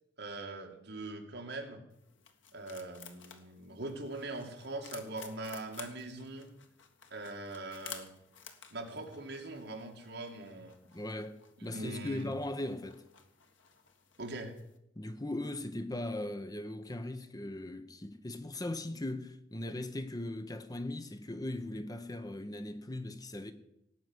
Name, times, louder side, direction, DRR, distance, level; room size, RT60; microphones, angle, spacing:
voice 1, 0.2-1.8 2.5-6.5 7.1-8.1 8.7-10.8 11.6-12.3 14.2-14.5, right 2 dB, 60° right, 2.3 m, -42 dB
sound 1, 1.9-14.8, left 7 dB, 75° left, 1.6 m, -54 dB
voice 2, 10.8-13.0 15.0-23.5, left 1 dB, 20° left, 0.8 m, -39 dB
17.5 x 5.9 x 9.6 m
head